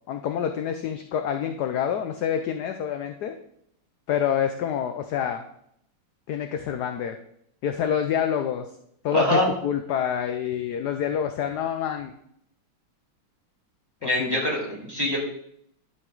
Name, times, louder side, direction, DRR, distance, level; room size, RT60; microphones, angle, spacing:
voice 1, 0.1-3.3 4.1-5.4 6.3-7.2 7.6-8.7 9.0-12.1 14.2-14.4, left 8 dB, 70° left, 7 dB, 0.9 m, -27 dB
voice 2, 9.1-9.5 14.0-15.2, left 1 dB, 10° right, -4 dB, 2.8 m, -24 dB
11.5 x 6.1 x 3.9 m, 0.71 s
omnidirectional pair, 2.3 m